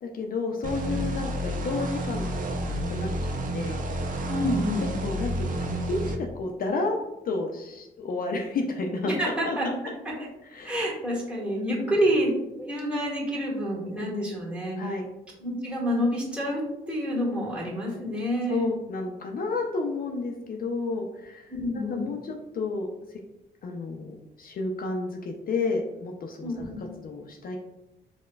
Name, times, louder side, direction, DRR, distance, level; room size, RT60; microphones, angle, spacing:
voice 1, 0.0-3.8 5.0-7.0 7.2-9.2 9.4-9.6 10.5-10.7 11.6-11.9 14.8-15.1 18.5-22.9 23.6-26.5 26.8-27.6, left 3 dB, 55° left, 2 dB, 0.4 m, -31 dB
sound 1, 0.6-6.2, right 1 dB, 50° right, 0.5 m, -30 dB
voice 2, 4.3-5.0 9.0-9.7 10.0-10.1 10.6-12.3 12.6-14.8 15.4-18.7 21.5-22.1 26.4-26.8, equal, 5° right, -5 dB, 1.2 m, -28 dB
4.4 x 2.1 x 2.2 m, 0.94 s
cardioid pair, 90°, 18 cm